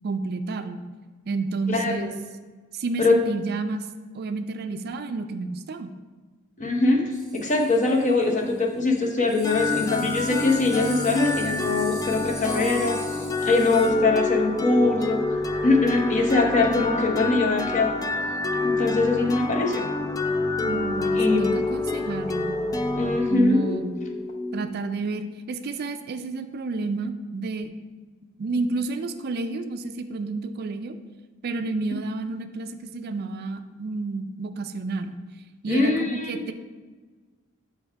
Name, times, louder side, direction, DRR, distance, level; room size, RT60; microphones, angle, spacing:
voice 1, 0.0-0.8 1.3-2.1 2.7-3.9 4.1-5.9 20.6-22.6 23.3-23.9 24.5-27.7 28.4-30.9 31.4-35.2 35.6-36.5, right 3 dB, 50° right, 9 dB, 0.4 m, -30 dB
voice 2, 1.7-2.1 3.0-3.2 6.6-13.0 13.4-15.2 15.6-17.9 18.6-19.8 21.1-21.5 23.0-23.8 35.7-36.4, left 3 dB, 35° left, 1 dB, 0.9 m, -22 dB
sound 1, 7.1-8.6 9.0-9.1 9.2-13.9, right 2 dB, ahead, 1.3 m, -41 dB
sound 2, 9.4-25.1, left 2 dB, 15° left, 0.4 m, -27 dB
7.8 x 3.4 x 4.6 m, 1.4 s
head